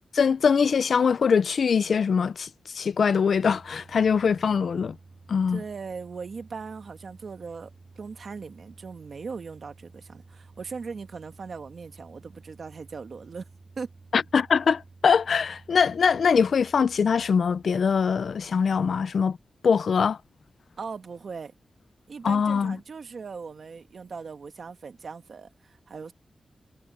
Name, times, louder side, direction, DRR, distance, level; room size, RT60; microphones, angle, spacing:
voice 1, 0.1-2.5 2.7-5.0 5.3-5.6 14.1-19.4 19.6-20.2 22.2-22.8, left 6 dB, 75° left, 0.5 m, -22 dB
Domestic sounds home sounds, 3.3-20.3, right 3 dB, 40° right, 8.0 m, -53 dB
voice 2, 5.5-13.5 13.8-13.9 20.8-21.5 22.1-26.1, right 5 dB, 65° right, 1.5 m, -39 dB
wide cardioid pair, 150°, 0 cm